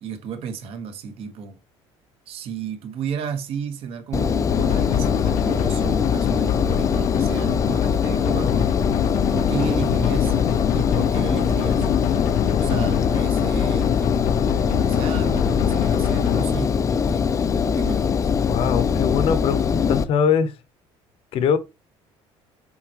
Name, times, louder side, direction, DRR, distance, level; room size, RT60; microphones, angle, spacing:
voice 1, 0.0-1.6 2.3-8.7 9.3-10.3 10.7-11.9 12.6-17.2 17.6-18.3, right 7 dB, 60° right, 1.4 m, -33 dB
Engine, 4.1-20.0, left 6 dB, 30° left, 0.5 m, -22 dB
sound 1, 4.5-16.5, left 13 dB, 85° left, 0.5 m, -26 dB
voice 2, 18.5-20.5 21.3-21.6, left 7 dB, 55° left, 0.9 m, -22 dB
7.4 x 4.4 x 3.0 m
cardioid pair, 140°, 11 cm